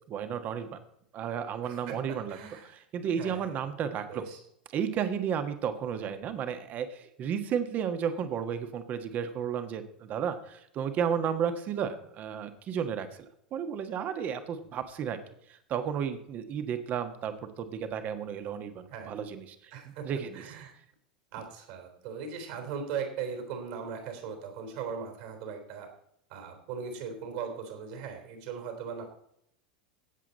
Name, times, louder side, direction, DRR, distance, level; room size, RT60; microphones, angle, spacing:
voice 1, 0.1-0.7 1.1-2.4 2.9-4.2 4.7-13.1 13.5-15.2 15.5-19.7 20.0-20.4, right 8 dB, 35° right, 9 dB, 1.4 m, -33 dB
voice 2, 1.6-2.8 3.2-3.5 4.1-4.4 18.9-19.1 19.7-20.1 20.3-20.8 21.3-25.9 26.3-29.0, right 6 dB, 55° right, 5 dB, 3.5 m, -39 dB
16.5 x 7.6 x 4.1 m, 0.73 s
figure-of-eight pair, 85°, 5 cm